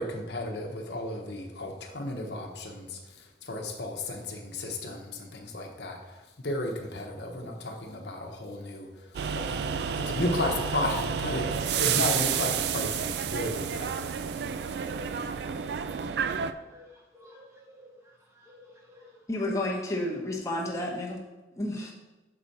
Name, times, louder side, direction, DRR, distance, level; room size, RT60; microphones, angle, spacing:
voice 1, 0.0-3.0 3.5-6.0 6.4-8.9 9.3-14.1, left 1 dB, 70° left, 2 dB, 1.0 m, -33 dB
sound 1, 9.1-16.5, right 7 dB, 65° right, 0.3 m, -30 dB
voice 2, 14.3-15.2 15.5-16.4 16.7-16.9 17.1-18.0 18.4-19.2, equal, 15° right, -1 dB, 0.9 m, -53 dB
voice 3, 19.3-21.2 21.5-21.9, left 1 dB, 15° left, -2 dB, 1.0 m, -31 dB
6.8 x 5.0 x 4.1 m, 1.1 s
head